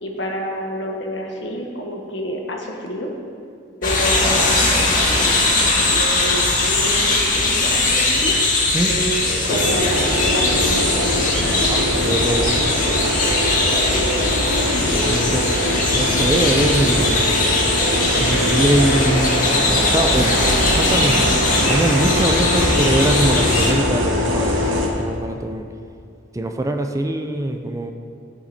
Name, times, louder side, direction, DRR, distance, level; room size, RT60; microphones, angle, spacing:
voice 1, 0.0-3.1 3.8-8.4 8.8-11.2 13.7-14.2, equal, 70° left, 1 dB, 1.4 m, -28 dB
sound 1, 3.8-23.7, left 2 dB, 45° left, 1.7 m, -20 dB
sound 2, 9.5-24.9, equal, 85° right, 1.6 m, -22 dB
voice 2, 11.7-12.6 14.8-15.5 15.9-17.2 17.9-20.4 20.7-21.3 21.7-25.6 26.3-27.9, right 1 dB, 15° right, 5 dB, 0.5 m, -22 dB
13.5 x 7.2 x 4.2 m, 2.4 s
head